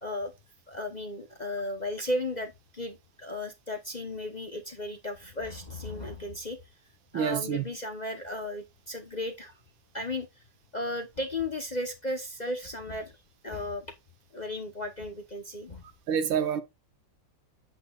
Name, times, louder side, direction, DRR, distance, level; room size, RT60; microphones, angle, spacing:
voice 1, 0.0-0.3 0.7-6.6 7.1-9.5 9.9-10.4 10.7-13.2 13.4-13.9 14.3-15.8, left 1 dB, 30° left, 0.8 m, -35 dB
voice 2, 7.1-7.6 16.1-16.6, right 8 dB, 90° right, 1.8 m, -27 dB
8.4 x 8.3 x 2.4 m
omnidirectional pair, 2.0 m